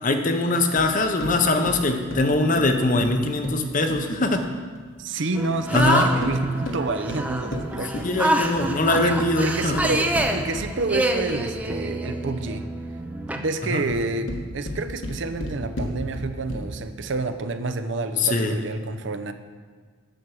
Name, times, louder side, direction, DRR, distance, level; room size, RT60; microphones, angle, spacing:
voice 1, 0.0-4.5 5.7-6.1 7.7-9.8 13.7-13.8 18.2-18.5, left 2 dB, 40° left, 6 dB, 0.7 m, -22 dB
sound 1, 0.7-4.9 5.6-8.7 9.4-11.6 13.7-16.9, left 1 dB, 65° left, 1.3 m, -34 dB
voice 2, 5.0-8.1 9.0-12.7 13.3-19.3, right 3 dB, 60° right, 9 dB, 0.6 m, -29 dB
sound 2, 5.3-13.4, right 1 dB, 5° right, 0.4 m, -27 dB
7.8 x 6.9 x 6.2 m, 1.5 s
head